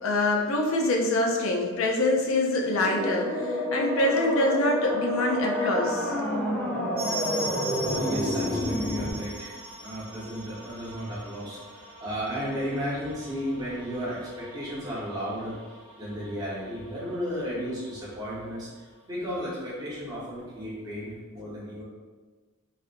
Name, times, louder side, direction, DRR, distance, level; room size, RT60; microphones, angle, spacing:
voice 1, 0.0-6.1, left 2 dB, 75° left, 0 dB, 0.5 m, -25 dB
sound 1, 2.6-9.1, equal, 5° left, 0.6 m, -29 dB
sound 2, 7.0-17.5 17.8-17.9 18.1-18.2 18.8-18.9, right 1 dB, 85° right, 1.1 m, -40 dB
voice 2, 7.8-15.6 16.0-21.8, equal, 20° right, -9 dB, 1.1 m, -34 dB
4.1 x 2.5 x 2.5 m, 1.4 s
head